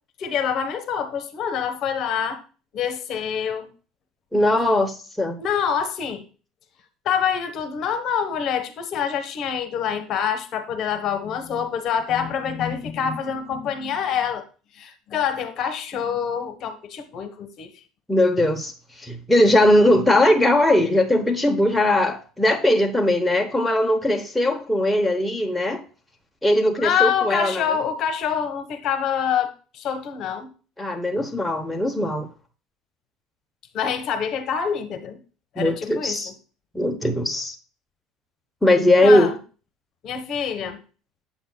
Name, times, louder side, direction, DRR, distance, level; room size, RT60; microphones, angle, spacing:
voice 1, 0.2-2.4 2.7-3.7 5.4-6.2 7.0-14.4 14.7-17.7 26.8-30.5 33.7-35.2 35.5-36.3 39.0-39.3 40.0-40.8, left 7 dB, 50° left, 1.3 m, -26 dB
voice 2, 4.3-5.4 18.1-25.8 26.4-27.6 30.8-32.3 35.6-36.3 36.7-37.5 38.6-39.3, left 1 dB, 5° left, 0.9 m, -19 dB
8.3 x 7.8 x 2.3 m
supercardioid pair, 110°, 0 cm